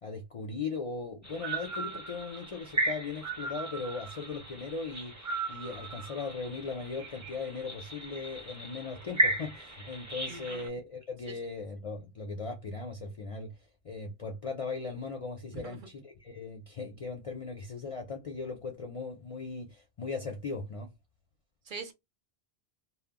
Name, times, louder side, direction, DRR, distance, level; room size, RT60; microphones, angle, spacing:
voice 1, 0.0-5.2 5.5-13.6 13.8-20.9, left 4 dB, 50° left, 0.4 m, -38 dB
sound 1, 1.2-10.7, right 1 dB, 20° right, 0.5 m, -36 dB
voice 2, 10.3-10.6 11.3-11.4 15.5-15.8 21.7-21.9, right 4 dB, 55° right, 0.7 m, -42 dB
2.1 x 2.0 x 3.4 m
omnidirectional pair, 1.1 m